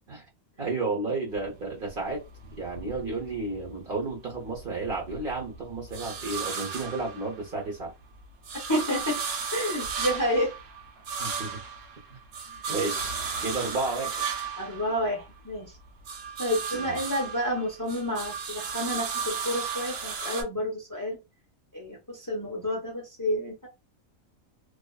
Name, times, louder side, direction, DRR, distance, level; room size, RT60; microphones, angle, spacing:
voice 1, 0.6-2.2 2.5-7.9 11.2-11.6 12.1-12.2 12.7-13.1 13.4-14.3 16.7-17.0, right 3 dB, 45° right, 0.8 m, -32 dB
sound 1, 1.3-3.7 4.1-7.7 8.1-15.6 15.9-20.4, right 6 dB, 85° right, 1.0 m, -35 dB
voice 2, 8.7-9.2 9.5-10.5 12.5-12.6 14.6-15.7 16.4-21.2 21.7-23.7, equal, 25° left, 0.5 m, -30 dB
2.5 x 2.3 x 2.2 m
omnidirectional pair, 1.5 m